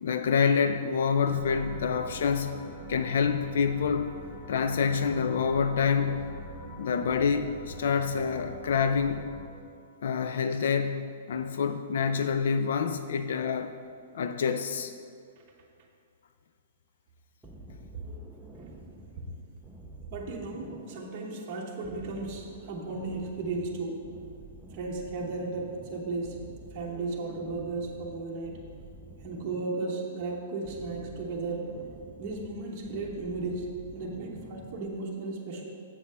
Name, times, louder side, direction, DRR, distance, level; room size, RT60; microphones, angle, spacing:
voice 1, 0.0-2.6 2.9-4.1 4.5-6.3 6.8-9.3 10.0-13.7 14.1-14.9, left 6 dB, 55° left, 9 dB, 0.3 m, -27 dB
sound 1, 1.2-9.4, equal, 15° left, 1.0 m, -43 dB
sound 2, 17.4-35.0, right 1 dB, 5° right, 0.5 m, -49 dB
voice 2, 20.1-24.0 24.7-26.4 26.7-28.6 29.2-31.7 32.2-35.6, right 3 dB, 25° right, -3 dB, 1.0 m, -35 dB
7.4 x 5.9 x 5.5 m, 2.4 s
hypercardioid pair, 175°, 0 cm